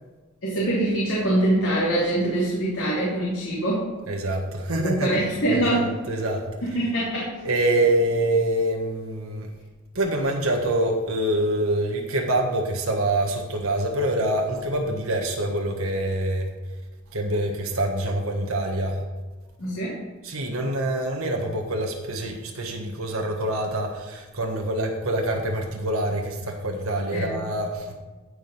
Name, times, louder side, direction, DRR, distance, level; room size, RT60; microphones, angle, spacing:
voice 1, 0.4-3.9 4.8-5.9 6.6-7.3 19.6-20.0 27.1-27.5, right 1 dB, 65° left, -6 dB, 2.9 m, -24 dB
voice 2, 4.1-5.1 5.5-6.5 7.4-9.5 9.9-16.5 17.1-19.0 20.2-27.9, right 1 dB, 80° right, 1 dB, 1.4 m, -25 dB
14.5 x 5.1 x 5.4 m, 1.3 s
head